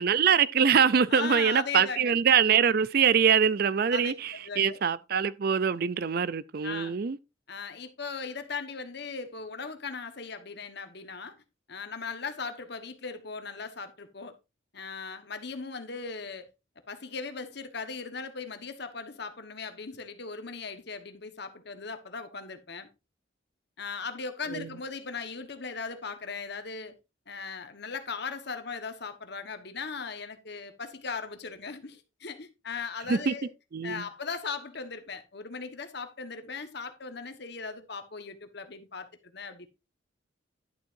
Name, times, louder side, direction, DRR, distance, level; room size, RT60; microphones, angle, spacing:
voice 1, 0.0-7.2 24.5-24.7 33.1-33.3 33.7-34.0, right 7 dB, 50° right, 0.4 m, -24 dB
voice 2, 1.1-2.2 3.9-4.1 4.4-4.8 6.6-6.9 7.5-11.3 11.7-14.3 14.7-16.5 16.9-22.9 23.8-27.0 27.3-33.5 33.8-39.7, left 5 dB, 55° left, 1.3 m, -38 dB
11.5 x 7.5 x 2.6 m
head